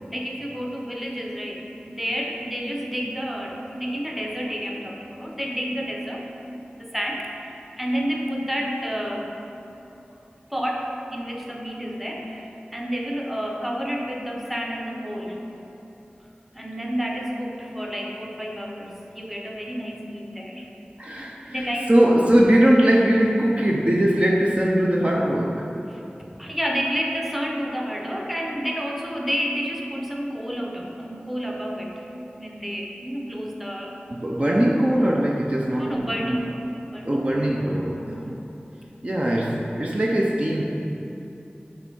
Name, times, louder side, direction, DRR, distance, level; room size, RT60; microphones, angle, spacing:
voice 1, 0.1-6.3 6.7-9.4 10.5-15.4 16.5-20.7 21.5-21.9 25.9-26.0 26.4-32.0 32.4-34.0 35.8-37.3 38.2-38.4, equal, 5° right, 0 dB, 0.9 m, -30 dB
voice 2, 21.0-25.7 34.1-36.2 37.0-38.4 39.0-40.6, right 1 dB, 35° right, -2 dB, 0.6 m, -21 dB
5.8 x 4.3 x 5.4 m, 2.9 s
wide cardioid pair, 40°, 4 cm